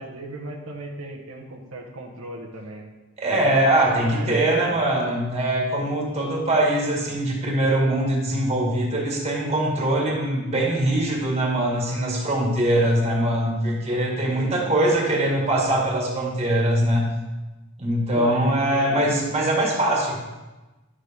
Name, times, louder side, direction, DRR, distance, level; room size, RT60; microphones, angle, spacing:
voice 1, 0.0-2.9 3.4-4.4 4.7-5.0 5.8-5.9 7.1-7.2 14.3-15.0 18.1-19.2, right 2 dB, 90° right, -2 dB, 1.3 m, -37 dB
voice 2, 3.2-17.1 17.8-20.2, right 1 dB, 30° right, -2 dB, 2.0 m, -22 dB
11.0 x 6.7 x 3.6 m, 1.1 s
head